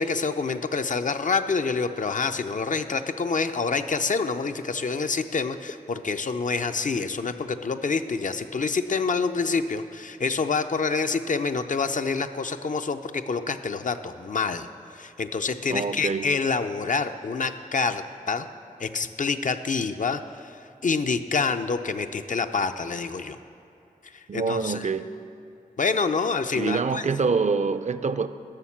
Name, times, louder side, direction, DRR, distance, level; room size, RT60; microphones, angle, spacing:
voice 1, 0.0-14.7 14.9-18.5 18.8-20.5 20.8-23.4 24.1-24.9 25.8-27.0, left 4 dB, 55° left, 8 dB, 0.5 m, -27 dB
voice 2, 15.7-16.3 24.3-25.1 26.5-28.3, right 4 dB, 50° right, 12 dB, 0.4 m, -25 dB
11.5 x 6.5 x 7.3 m, 2.7 s
wide cardioid pair, 80°, 15 cm